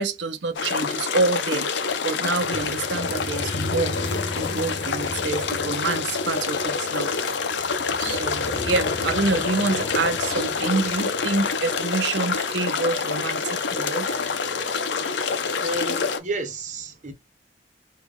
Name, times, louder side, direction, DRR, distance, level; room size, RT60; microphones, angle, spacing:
voice 1, 0.0-4.0 4.4-7.1 8.0-14.2, right 3 dB, 85° right, 0.6 m, -27 dB
sound 1, 0.5-16.2, left 5 dB, 85° left, 0.7 m, -27 dB
sound 2, 2.4-12.5, left 2 dB, 30° left, 0.3 m, -36 dB
voice 2, 15.6-17.1, right 2 dB, 45° right, 0.8 m, -31 dB
3.3 x 2.4 x 3.4 m
head